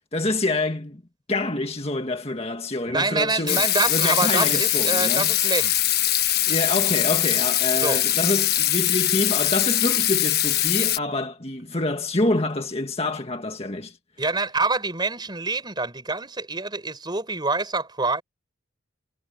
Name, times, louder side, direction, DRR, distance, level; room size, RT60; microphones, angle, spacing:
voice 1, 0.1-1.0 1.3-5.3 6.5-14.0, left 2 dB, 30° left, 1.8 m, -26 dB
voice 2, 2.9-5.8 7.8-8.0 14.2-18.2, right 3 dB, 20° right, 4.4 m, -26 dB
Water tap faucet / Sink (filling or washing), 3.5-11.0, left 13 dB, 50° left, 1.4 m, -22 dB
head